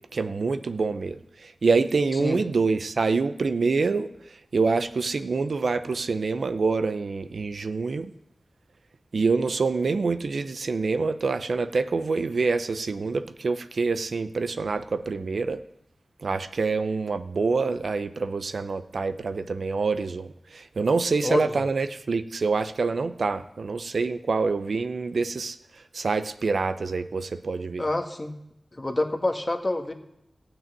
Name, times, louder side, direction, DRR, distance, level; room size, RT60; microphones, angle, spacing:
voice 1, 0.1-4.1 4.5-8.1 9.1-15.6 16.2-25.6 25.9-27.8, right 4 dB, 75° right, 12 dB, 0.5 m, -26 dB
voice 2, 21.2-21.6 27.8-28.3 28.7-29.9, left 2 dB, 30° left, 6 dB, 1.4 m, -27 dB
14.0 x 6.2 x 9.0 m, 0.81 s
wide cardioid pair, 65°, 0 cm